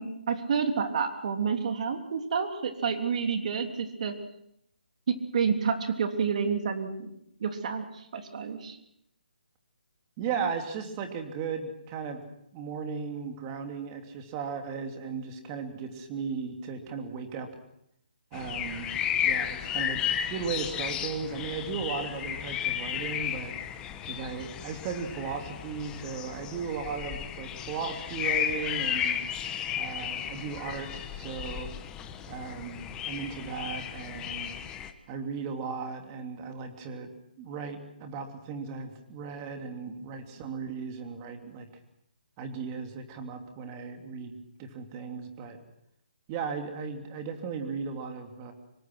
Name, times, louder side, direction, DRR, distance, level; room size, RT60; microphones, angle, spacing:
voice 1, 0.0-4.1 5.1-7.1 7.4-7.8 8.1-8.8, right 6 dB, 50° right, 5 dB, 3.3 m, -29 dB
voice 2, 10.2-12.2 12.5-17.5 18.3-18.9 19.2-23.6 24.1-29.2 29.7-31.7 32.3-34.6 35.1-37.1 37.4-41.7 42.4-45.6 46.3-48.5, right 5 dB, 25° right, 5 dB, 2.9 m, -36 dB
sound 1, 18.3-34.9, left 9 dB, 15° left, 1.3 m, -34 dB
25.5 x 23.0 x 6.2 m, 0.76 s
hypercardioid pair, 160°, 5 cm